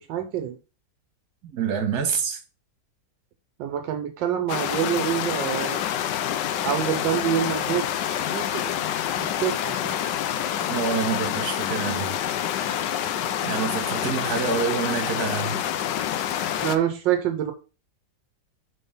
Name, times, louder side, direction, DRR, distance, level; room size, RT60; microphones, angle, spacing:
voice 1, 0.1-0.5 3.6-5.8 6.6-7.8 8.3-8.6 9.2-9.9 16.6-17.5, right 10 dB, 80° right, 1.4 m, -26 dB
voice 2, 1.5-2.4 10.6-12.1 13.4-15.6, right 6 dB, 60° right, 1.6 m, -27 dB
sound 1, 4.5-16.8, left 10 dB, 80° left, 1.2 m, -27 dB
5.4 x 4.0 x 5.5 m
omnidirectional pair, 2.0 m